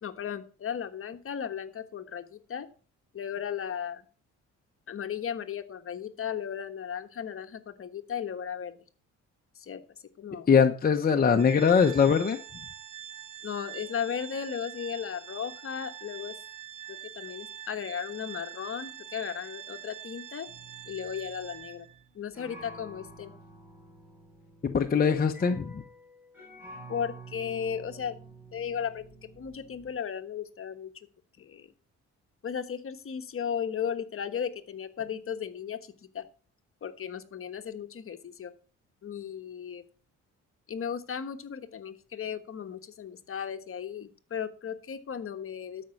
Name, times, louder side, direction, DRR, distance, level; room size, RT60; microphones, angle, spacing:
voice 1, 0.0-2.7 3.1-4.0 4.9-8.8 9.6-9.8 10.2-10.5 13.4-16.3 17.1-20.5 20.9-21.9 22.1-23.3 26.9-28.2 28.5-29.0 29.4-30.9 31.4-31.7 32.4-35.8 36.1-36.2 36.8-38.5 39.0-39.8 40.7-45.8, left 8 dB, 45° left, 8 dB, 1.3 m, -35 dB
voice 2, 10.5-12.4 24.6-25.8, left 6 dB, 30° left, 4 dB, 0.9 m, -22 dB
Organ, 11.4-22.0, right 10 dB, 85° right, 1.1 m, -44 dB
sound 1, 20.5-29.9, right 2 dB, 5° right, 5.1 m, -50 dB
12.5 x 5.4 x 5.9 m, 0.39 s
cardioid pair, 90°, 30 cm